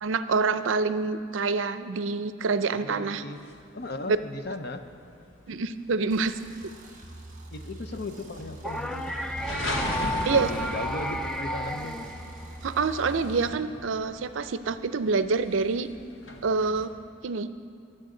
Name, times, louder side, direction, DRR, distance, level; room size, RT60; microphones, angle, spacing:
voice 1, 0.0-3.2 4.1-4.2 5.5-6.3 10.3-10.5 12.6-15.9 16.4-16.9 17.2-17.5, right 4 dB, 75° right, 12 dB, 0.5 m, -26 dB
voice 2, 2.7-4.8 7.5-9.2 10.0-12.0, left 2 dB, 55° left, 9 dB, 0.7 m, -37 dB
sound 1, 3.5-16.9, left 1 dB, 70° left, 1.2 m, -38 dB
sound 2, 6.1-13.5, right 1 dB, 40° right, 1.5 m, -44 dB
sound 3, 8.6-12.8, equal, ahead, 0.4 m, -33 dB
22.5 x 7.7 x 3.8 m, 2.3 s
head